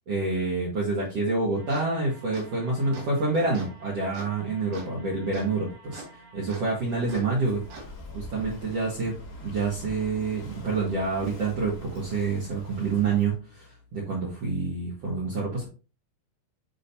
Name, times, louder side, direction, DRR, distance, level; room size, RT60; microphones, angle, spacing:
voice 1, 0.1-6.0 6.3-9.1 9.4-15.7, right 3 dB, 50° right, -5 dB, 2.4 m, -28 dB
sound 1, 1.6-7.9, right 3 dB, 80° right, 3.8 m, -46 dB
Walk footsteps / Wind / Waves surf, 6.7-13.4, left 2 dB, 50° left, 3.2 m, -44 dB
10.5 x 3.9 x 2.8 m, 0.33 s
omnidirectional pair, 4.5 m